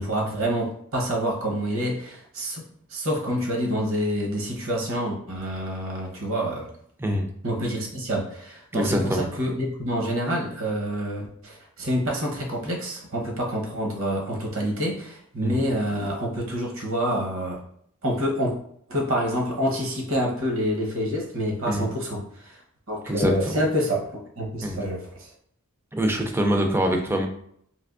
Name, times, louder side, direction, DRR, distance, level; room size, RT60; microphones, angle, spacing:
voice 1, 0.0-2.6 2.9-6.7 7.4-17.6 18.0-18.6 18.9-22.6 22.9-25.3, equal, 65° right, -1 dB, 0.9 m, -27 dB
voice 2, 8.7-9.3 15.4-15.6 21.7-21.9 23.1-23.3 24.6-24.8 25.9-27.3, right 1 dB, 10° right, 3 dB, 0.4 m, -24 dB
3.3 x 2.9 x 2.4 m, 0.67 s
head